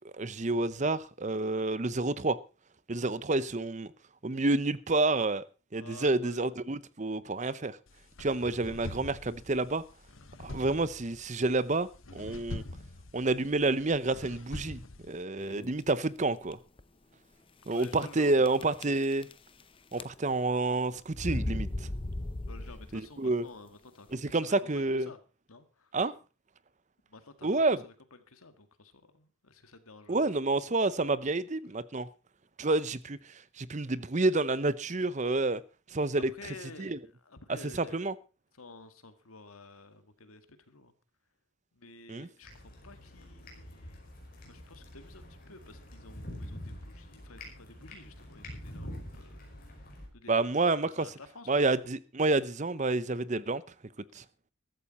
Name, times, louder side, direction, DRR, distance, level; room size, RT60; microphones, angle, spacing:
voice 1, 0.0-2.4 2.9-3.9 4.2-5.4 5.7-7.8 8.2-9.8 10.4-12.6 13.1-14.8 15.1-16.6 17.7-19.3 19.9-21.9 22.9-23.4 24.1-25.1 25.9-26.2 27.4-27.8 30.1-32.1 32.6-35.6 35.9-36.3 36.8-37.0 37.5-38.1 42.1-42.3 50.3-51.1 51.5-53.6 54.1-54.2, right 2 dB, 35° right, 0.7 m, -29 dB
voice 2, 5.7-6.4 17.6-18.5 22.5-25.2 25.5-25.9 27.1-27.9 28.3-30.3 36.2-36.9 37.2-38.1 38.6-40.9 41.7-44.1 44.4-49.4 50.1-50.4 50.8-51.7, left 3 dB, 85° left, 1.9 m, -51 dB
sound 1, 7.9-15.2, left 2 dB, 70° left, 1.2 m, -45 dB
sound 2, 15.4-15.8 16.4-16.5 16.8-16.9 17.8-18.2 18.5-19.6 19.9-20.5 21.1-23.1, left 1 dB, 25° left, 0.6 m, -36 dB
sound 3, 42.4-50.1, left 1 dB, 40° left, 5.4 m, -46 dB
14.5 x 13.5 x 4.2 m
head